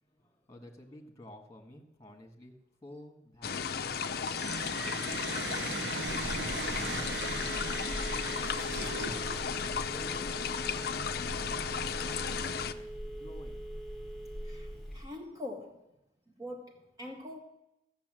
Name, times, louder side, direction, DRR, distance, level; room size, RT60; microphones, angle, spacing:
voice 1, 0.0-4.1 4.5-5.2 7.9-8.7 9.6-10.3 11.0-13.6, left 1 dB, 15° left, 3 dB, 1.6 m, -53 dB
sound 1, 3.4-12.7, left 6 dB, 55° left, 0.5 m, -35 dB
sound 2, 4.2-9.9, right 4 dB, 75° right, 0.7 m, -39 dB
Telephone, 6.1-15.0, equal, ahead, 1.3 m, -41 dB
voice 2, 14.4-16.0 16.4-17.4, left 1 dB, 20° right, 2 dB, 1.0 m, -44 dB
14.5 x 7.3 x 7.6 m, 0.88 s
head